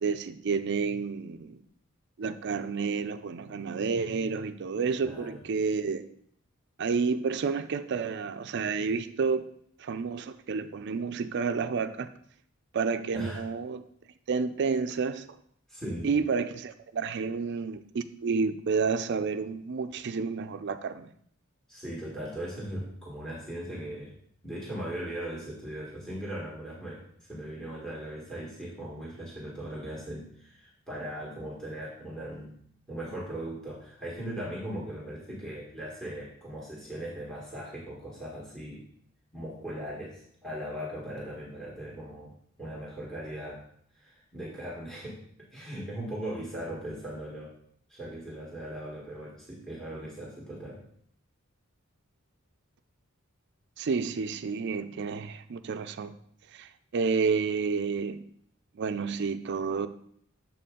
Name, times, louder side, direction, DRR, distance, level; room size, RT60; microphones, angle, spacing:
voice 1, 0.0-1.6 2.2-6.0 6.8-9.5 9.8-12.1 12.7-13.8 14.3-15.3 16.0-21.1 53.8-56.1 56.5-58.3 58.8-59.9, right 5 dB, 55° right, 0.4 m, -30 dB
voice 2, 5.0-5.4 13.1-13.5 15.7-16.1 21.7-24.1 24.4-32.5 32.9-38.8 39.3-42.3 42.6-43.6 43.9-45.2 45.5-47.5 47.9-50.8, right 1 dB, ahead, 1.5 m, -39 dB
7.2 x 4.2 x 3.7 m
head